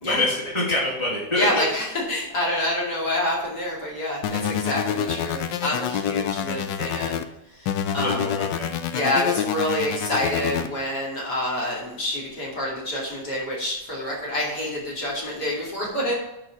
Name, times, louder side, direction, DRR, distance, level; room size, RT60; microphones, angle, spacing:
voice 1, 0.0-1.5 8.0-8.7, left 1 dB, 15° left, -4 dB, 2.7 m, -26 dB
voice 2, 1.3-7.2 7.9-8.2 8.9-16.1, left 1 dB, 55° left, -4 dB, 3.1 m, -27 dB
sound 1, 4.2-7.2 7.7-10.7, left 8 dB, 75° left, 1.3 m, -27 dB
8.8 x 4.8 x 5.9 m, 0.93 s
omnidirectional pair, 2.1 m